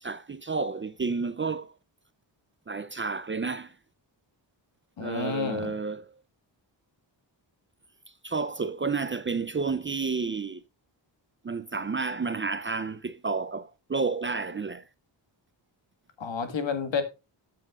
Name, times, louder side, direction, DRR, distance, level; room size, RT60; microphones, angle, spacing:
voice 1, 0.0-1.7 2.7-3.7 5.0-6.1 8.2-10.6 11.4-14.8, right 4 dB, 25° right, 0.5 m, -31 dB
voice 2, 5.0-5.7 16.2-17.0, left 5 dB, 70° left, 1.9 m, -30 dB
12.5 x 7.6 x 2.4 m
wide cardioid pair, 165°, 46 cm